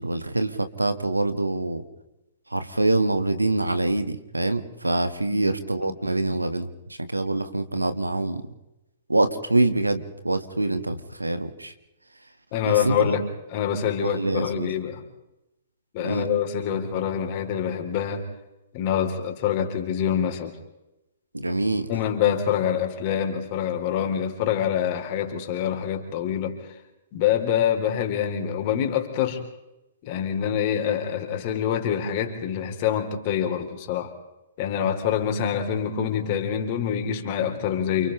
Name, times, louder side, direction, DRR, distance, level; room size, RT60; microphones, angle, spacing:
voice 1, 0.0-1.8 2.5-8.4 9.1-11.7 12.7-13.2 14.0-14.7 16.0-16.3 21.3-21.9, right 2 dB, 80° right, 9 dB, 1.9 m, -25 dB
voice 2, 12.5-13.2 13.5-15.0 15.9-18.3 18.7-20.6 21.9-26.6 27.1-29.4 30.0-34.1 34.6-38.1, left 9 dB, 40° left, 4 dB, 3.8 m, -25 dB
29.5 x 29.5 x 3.4 m, 0.95 s
figure-of-eight pair, 115°, 0 cm